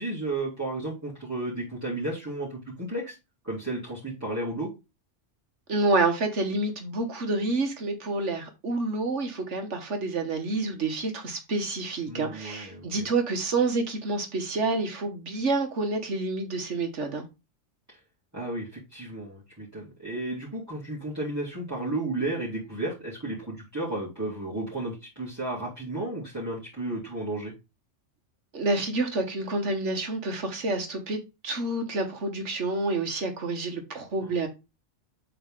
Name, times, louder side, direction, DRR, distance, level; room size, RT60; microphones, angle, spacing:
voice 1, 0.0-3.2 3.4-4.7 12.0-13.1 17.9-18.0 18.3-27.5, right 2 dB, 15° right, 2.6 m, -33 dB
voice 2, 5.7-17.3 28.5-34.5, right 2 dB, 70° right, 1.8 m, -28 dB
7.6 x 3.9 x 3.7 m
omnidirectional pair, 1.3 m